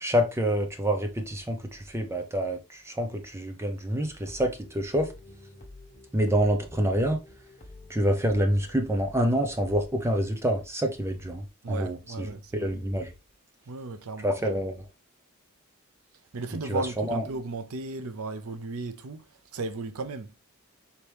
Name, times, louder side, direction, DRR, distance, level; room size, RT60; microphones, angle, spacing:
voice 1, 0.0-5.1 6.1-7.2 7.9-12.3 12.5-13.1 14.2-14.8 16.7-17.2, equal, 10° right, 0.6 m, -27 dB
sound 1, 4.2-9.9, left 2 dB, 35° left, 1.1 m, -49 dB
voice 2, 11.6-12.7 13.7-14.6 16.3-20.3, right 3 dB, 80° right, 0.6 m, -35 dB
4.6 x 2.9 x 3.3 m
head